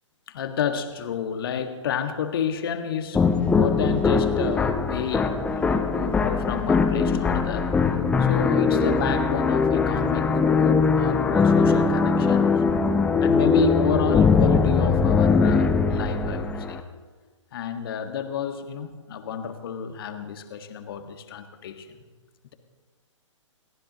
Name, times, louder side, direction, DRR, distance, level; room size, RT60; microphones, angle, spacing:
voice 1, 0.3-7.7 8.2-12.6 13.2-16.8 17.5-22.0, left 7 dB, 45° left, 1.7 m, -30 dB
sound 1, 3.1-16.8, left 4 dB, 5° left, 0.7 m, -21 dB
29.5 x 14.5 x 3.0 m
figure-of-eight pair, 120°, 16 cm